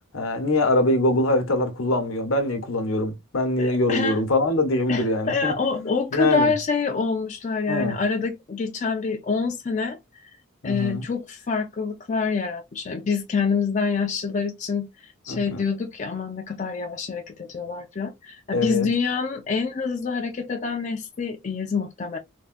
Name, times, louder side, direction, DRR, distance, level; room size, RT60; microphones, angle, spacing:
voice 1, 0.1-6.5 7.7-8.0 10.6-11.0 15.3-15.6 18.5-18.9, left 1 dB, 75° left, 0.8 m, -23 dB
voice 2, 3.6-4.2 4.9-10.0 10.6-22.2, left 4 dB, 35° left, 0.4 m, -26 dB
3.4 x 2.1 x 2.4 m
head